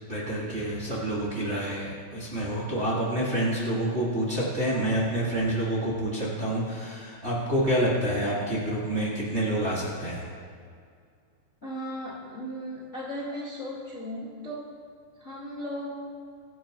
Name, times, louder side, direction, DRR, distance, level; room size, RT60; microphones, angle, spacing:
voice 1, 0.1-10.3, right 1 dB, 60° right, -6 dB, 0.6 m, -28 dB
voice 2, 11.6-14.7 15.2-16.1, equal, 45° left, -7 dB, 0.9 m, -36 dB
23.5 x 9.1 x 3.0 m, 2.2 s
omnidirectional pair, 4.9 m